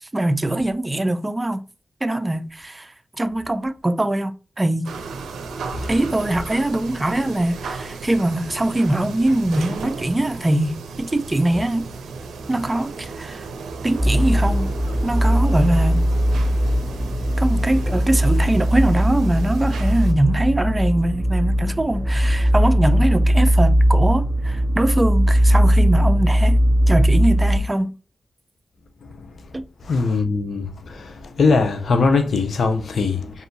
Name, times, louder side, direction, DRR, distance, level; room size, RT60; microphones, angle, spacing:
voice 1, 0.0-1.6 2.0-4.9 5.9-11.9 12.5-13.5 13.8-14.7 15.0-16.0 17.4-26.6 26.9-27.9 29.5-29.6, right 1 dB, 25° right, 0.5 m, -22 dB
sound 1, 4.8-20.1, right 4 dB, 90° right, 0.5 m, -35 dB
sound 2, 14.0-27.6, equal, 10° left, 1.4 m, -19 dB
voice 2, 29.9-31.1 31.4-33.3, left 4 dB, 70° left, 0.6 m, -20 dB
5.3 x 2.6 x 2.6 m
supercardioid pair, 45°, 0 cm